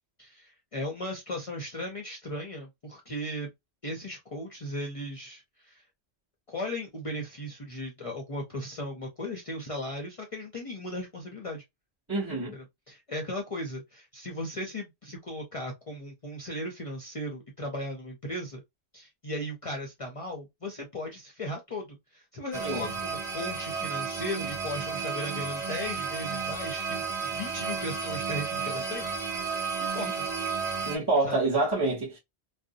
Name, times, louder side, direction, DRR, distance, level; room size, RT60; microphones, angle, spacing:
voice 1, 0.2-3.5 3.8-5.8 6.5-11.6 12.5-18.6 18.9-29.1 29.8-30.3 31.2-31.4, left 1 dB, 45° left, 0.5 m, -37 dB
voice 2, 12.1-12.5 22.6-22.9 30.8-32.2, right 2 dB, 15° right, 0.9 m, -27 dB
sound 1, 22.5-31.0, right 5 dB, 45° right, 0.8 m, -32 dB
2.5 x 2.0 x 2.6 m
omnidirectional pair, 1.1 m